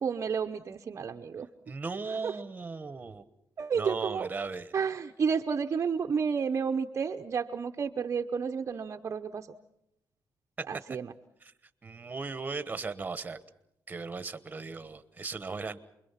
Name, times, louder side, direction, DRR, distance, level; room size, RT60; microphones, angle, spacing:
voice 1, 0.0-1.5 2.2-2.3 3.6-4.3 4.7-9.5 10.7-11.1, right 6 dB, 40° right, 4 dB, 0.8 m, -31 dB
voice 2, 1.7-3.2 3.7-4.7 10.9-11.0 11.4-11.5 11.8-13.4 13.9-15.8, right 4 dB, 20° right, 12 dB, 1.2 m, -37 dB
28.5 x 22.5 x 5.7 m, 0.83 s
cardioid pair, 140°, 7 cm